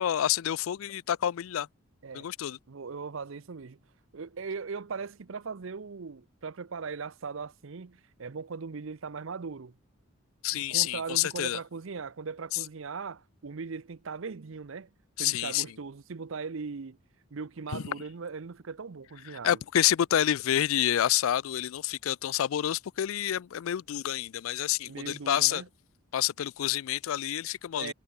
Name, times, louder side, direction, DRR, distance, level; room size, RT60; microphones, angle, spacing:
voice 1, 0.0-1.7 2.1-2.6 10.4-11.6 12.5-12.6 15.2-15.6 17.7-17.8 19.2-25.6 26.1-27.9, left 11 dB, 70° left, 0.4 m, -28 dB
voice 2, 2.7-3.8 4.1-9.7 10.5-14.9 15.2-17.0 17.3-19.5 24.9-25.7 27.7-27.9, right 5 dB, 65° right, 0.6 m, -39 dB
head